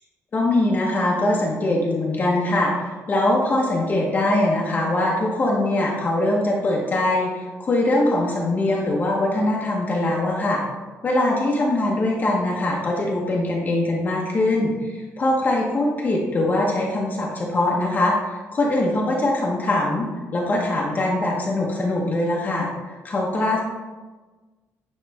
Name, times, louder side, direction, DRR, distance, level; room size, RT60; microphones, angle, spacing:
voice 1, 0.3-10.6 11.0-22.7 23.0-23.6, left 1 dB, 30° left, -3 dB, 0.9 m, -22 dB
9.4 x 3.2 x 3.4 m, 1.3 s
cardioid pair, 145°, 6 cm